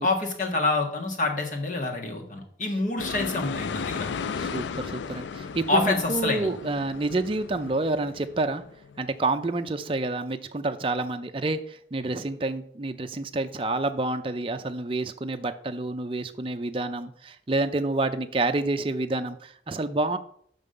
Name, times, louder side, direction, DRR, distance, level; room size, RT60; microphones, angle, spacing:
voice 1, 0.0-4.1 5.7-6.5, left 3 dB, 45° left, 2 dB, 1.5 m, -27 dB
sound 1, 3.0-9.2, left 5 dB, 90° left, 0.4 m, -35 dB
voice 2, 4.4-8.6 9.0-20.2, right 2 dB, 30° right, 7 dB, 0.5 m, -28 dB
6.0 x 5.4 x 6.6 m, 0.64 s
head